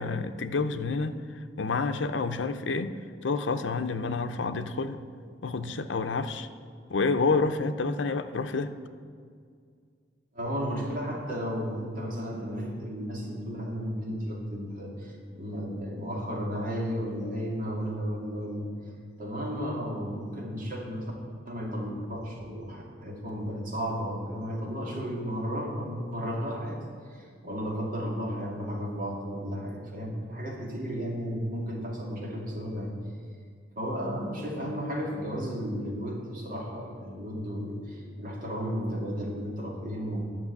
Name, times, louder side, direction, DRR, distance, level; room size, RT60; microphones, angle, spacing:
voice 1, 0.0-2.9 3.2-5.0 5.4-6.5 6.9-8.7, left 4 dB, 80° left, 9 dB, 0.6 m, -29 dB
voice 2, 10.3-18.7 19.2-21.1 21.5-26.8 27.1-32.9 33.8-40.3, equal, 50° right, -2 dB, 2.4 m, -33 dB
10.5 x 6.0 x 8.4 m, 2.1 s
head